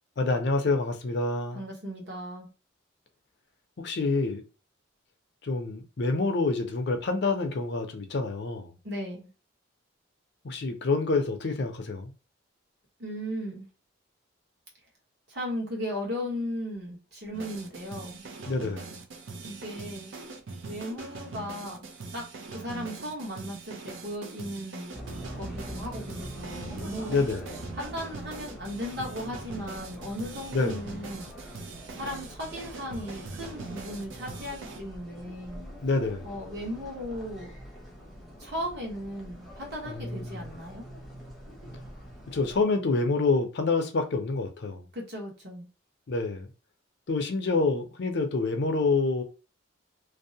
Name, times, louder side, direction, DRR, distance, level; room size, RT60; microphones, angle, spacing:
voice 1, 0.2-1.6 3.8-4.4 5.4-8.7 10.4-12.1 18.5-18.9 27.1-27.5 30.5-30.8 35.8-36.3 39.9-40.5 42.3-44.9 46.1-46.5 47.1-49.2, left 3 dB, 55° left, 0.5 m, -27 dB
voice 2, 1.5-2.5 8.8-9.3 13.0-13.7 15.3-18.2 19.4-20.1 20.6-22.2 22.5-25.0 25.3-27.3 27.7-31.3 31.9-35.6 36.2-37.6 38.4-40.8 44.9-45.7, equal, 55° right, 1.1 m, -36 dB
sound 1, 17.3-34.8, right 4 dB, 70° right, 0.5 m, -42 dB
sound 2, 24.9-42.6, equal, ahead, 0.6 m, -44 dB
2.6 x 2.0 x 2.7 m
head